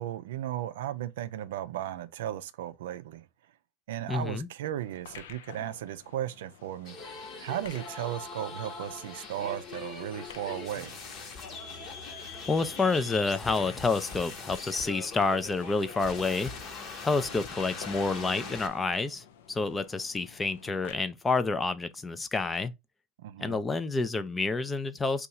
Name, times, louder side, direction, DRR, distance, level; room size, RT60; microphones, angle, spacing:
voice 1, 0.0-3.2 3.9-7.1 7.4-11.0 23.2-23.6, right 12 dB, 80° right, 0.3 m, -35 dB
voice 2, 4.1-4.5 12.5-16.5 17.0-22.7 23.4-25.3, left 3 dB, 15° left, 0.4 m, -29 dB
sound 1, 4.8-21.0, left 8 dB, 80° left, 0.5 m, -52 dB
sound 2, 6.9-18.7, left 4 dB, 40° left, 1.0 m, -42 dB
2.7 x 2.3 x 4.0 m
supercardioid pair, 105°, 0 cm